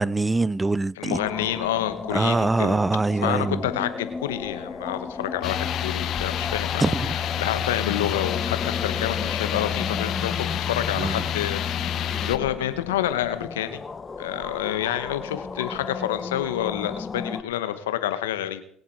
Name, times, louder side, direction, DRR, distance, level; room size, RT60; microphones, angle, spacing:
voice 1, 0.0-1.2 2.1-3.7 6.8-7.1 11.0-11.2, right 3 dB, 20° right, 0.5 m, -23 dB
voice 2, 1.0-2.8 3.2-6.9 7.4-13.8 14.2-18.6, left 12 dB, 80° left, 1.1 m, -28 dB
sound 1, 1.1-17.4, left 4 dB, 30° left, 1.0 m, -35 dB
sound 2, 5.4-12.4, left 10 dB, 55° left, 1.1 m, -28 dB
23.5 x 7.9 x 4.6 m
hypercardioid pair, 60°, 0 cm